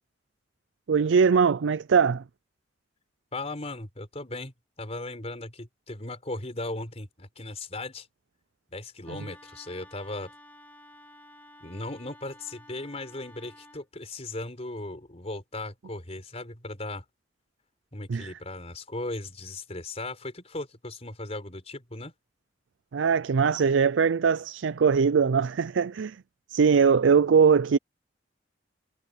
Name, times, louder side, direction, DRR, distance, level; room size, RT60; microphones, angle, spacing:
voice 1, 0.9-2.2 9.1-9.2 18.1-18.3 22.9-26.2 26.5-27.8, right 6 dB, 90° right, 0.5 m, -21 dB
voice 2, 3.3-8.1 8.7-10.3 11.6-17.0 17.9-22.1, left 2 dB, 35° left, 4.3 m, -37 dB
Wind instrument woodwind instrument, 9.0-13.9, left 1 dB, 10° left, 2.3 m, -52 dB
head